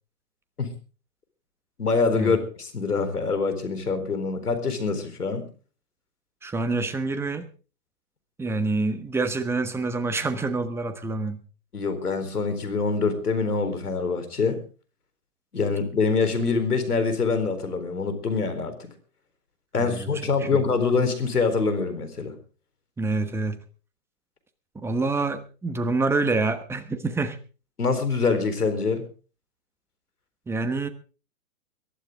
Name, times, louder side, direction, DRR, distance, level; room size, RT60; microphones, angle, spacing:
voice 1, 1.8-5.5 11.7-14.6 15.5-18.7 19.7-22.3 27.8-29.0, left 4 dB, 90° left, 9 dB, 4.2 m, -25 dB
voice 2, 6.4-7.5 8.4-11.4 19.8-20.1 20.4-20.6 23.0-23.6 24.7-27.4 30.5-30.9, right 3 dB, 5° right, 9 dB, 1.2 m, -27 dB
22.5 x 12.0 x 3.7 m, 0.37 s
hypercardioid pair, 130°, 44 cm